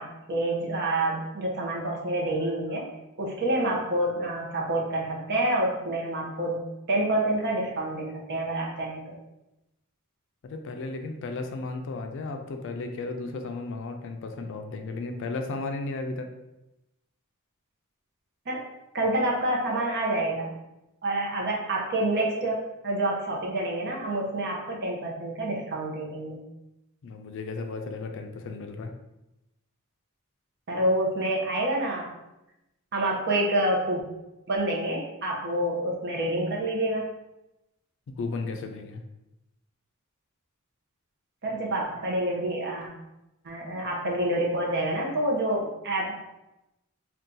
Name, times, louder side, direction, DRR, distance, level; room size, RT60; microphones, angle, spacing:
voice 1, 0.0-2.8 3.2-9.1 18.5-18.6 18.9-20.5 21.0-26.4 30.7-32.1 32.9-34.0 34.5-37.1 41.4-42.9 43.4-46.1, right 1 dB, 50° right, -2 dB, 0.7 m, -28 dB
voice 2, 10.4-16.3 27.0-28.9 38.2-39.0, left 3 dB, 60° left, 5 dB, 0.4 m, -34 dB
2.7 x 2.3 x 3.7 m, 0.93 s
head